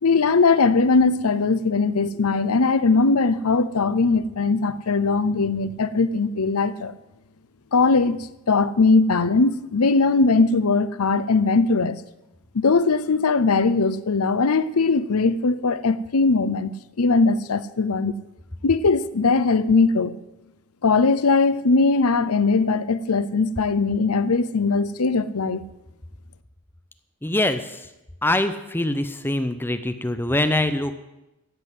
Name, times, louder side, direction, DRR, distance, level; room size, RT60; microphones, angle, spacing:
voice 1, 0.0-7.0 7.7-12.0 12.5-16.7 17.0-18.1 18.6-20.1 20.8-25.6, left 4 dB, 90° left, 0.7 m, -20 dB
voice 2, 27.2-27.8 28.2-31.0, left 1 dB, 10° left, 0.6 m, -23 dB
13.5 x 7.9 x 8.2 m
head